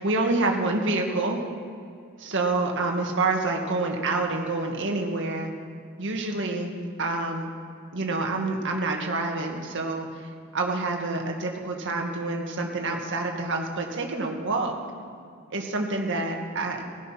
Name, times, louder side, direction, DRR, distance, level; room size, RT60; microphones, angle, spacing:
voice 1, 0.0-1.4 2.2-5.5 6.0-7.5 7.9-14.8 15.5-16.8, right 2 dB, 60° right, 2 dB, 2.0 m, -27 dB
16.5 x 12.0 x 5.9 m, 2.3 s
head